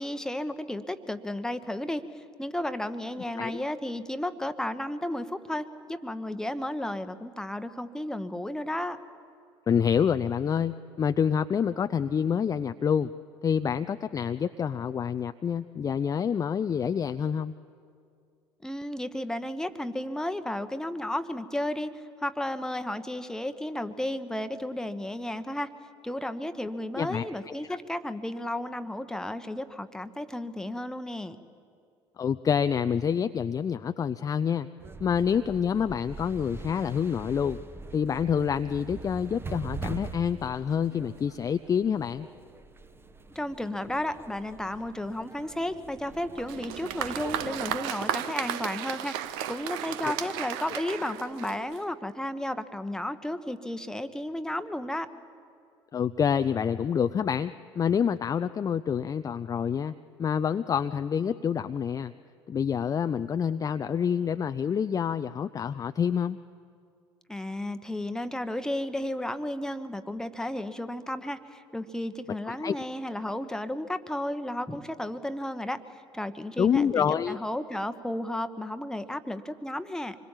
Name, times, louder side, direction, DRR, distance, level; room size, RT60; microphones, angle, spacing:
voice 1, 0.0-9.0 18.6-25.7 26.0-31.4 43.3-55.1 67.3-75.8 76.1-80.2, left 1 dB, 5° left, 10 dB, 1.1 m, -33 dB
voice 2, 9.7-13.1 13.4-17.5 27.0-27.8 32.2-34.7 35.0-37.6 37.9-42.3 50.7-50.8 55.9-59.9 60.2-62.1 62.5-66.4 72.5-72.8 76.6-77.4, left 7 dB, 25° left, 10 dB, 0.5 m, -27 dB
sound 1, 34.8-47.8, right 4 dB, 15° right, 1.1 m, -43 dB
Applause, 46.4-51.9, right 11 dB, 60° right, 0.9 m, -34 dB
26.0 x 21.5 x 7.4 m, 2.3 s
figure-of-eight pair, 60°, 13 cm